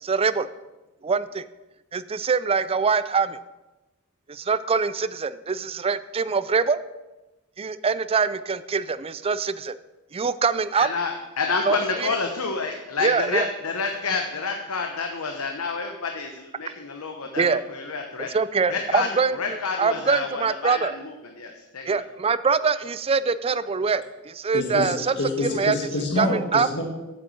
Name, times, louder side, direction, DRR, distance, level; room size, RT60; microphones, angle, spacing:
voice 1, 0.0-0.5 1.0-1.5 1.9-3.4 4.3-6.8 7.6-9.7 10.1-10.9 11.6-12.1 13.0-13.5 17.4-17.6 18.2-20.9 21.9-25.1 25.4-25.7 26.2-26.7, right 5 dB, 25° right, 15 dB, 0.4 m, -24 dB
voice 2, 10.8-18.3 18.7-19.1 19.3-21.9, left 4 dB, 80° left, 4 dB, 1.0 m, -29 dB
voice 3, 24.5-26.8, left 2 dB, 55° left, 1 dB, 1.7 m, -27 dB
8.3 x 7.7 x 7.8 m, 1.1 s
head